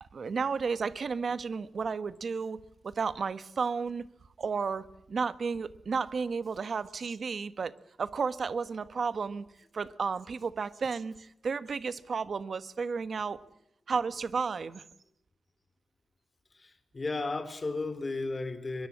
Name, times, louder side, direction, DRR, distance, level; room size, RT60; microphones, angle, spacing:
voice 1, 0.0-4.1 4.4-7.7 8.0-9.4 9.7-13.4 13.9-14.8, right 5 dB, 50° right, 14 dB, 1.3 m, -33 dB
voice 2, 16.5-18.9, left 3 dB, 30° left, 11 dB, 3.7 m, -34 dB
24.0 x 22.5 x 8.6 m, 0.76 s
wide cardioid pair, 135°, 0 cm